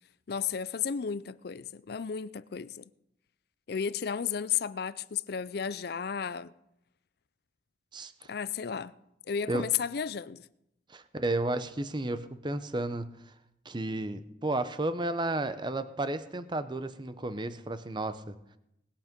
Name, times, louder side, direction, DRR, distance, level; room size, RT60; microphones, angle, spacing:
voice 1, 0.3-2.9 3.7-6.5 8.3-8.9 9.3-10.5, left 7 dB, 55° left, 0.4 m, -33 dB
voice 2, 7.9-8.3 9.5-9.6 10.9-13.1 13.6-18.3, right 2 dB, 25° right, 0.7 m, -32 dB
19.5 x 8.6 x 5.2 m
head